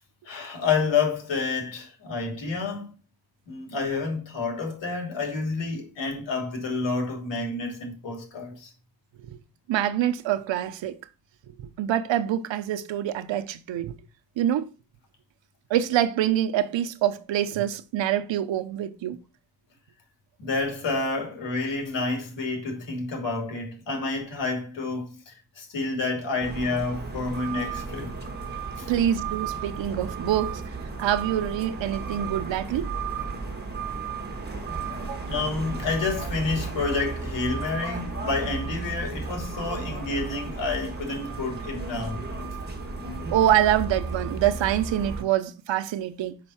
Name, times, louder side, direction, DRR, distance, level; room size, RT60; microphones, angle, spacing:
voice 1, 0.2-2.9 3.5-8.7 20.4-28.2 28.8-28.9 35.2-42.2, left 3 dB, 85° left, 3.1 m, -29 dB
voice 2, 9.7-11.0 11.6-14.0 14.4-14.7 15.7-19.2 28.9-30.6 31.0-32.9 35.1-35.3 43.2-46.4, right 11 dB, 85° right, 0.9 m, -25 dB
sound 1, 26.4-45.2, right 4 dB, 25° right, 1.7 m, -34 dB
6.0 x 5.3 x 5.7 m
wide cardioid pair, 140°, 43 cm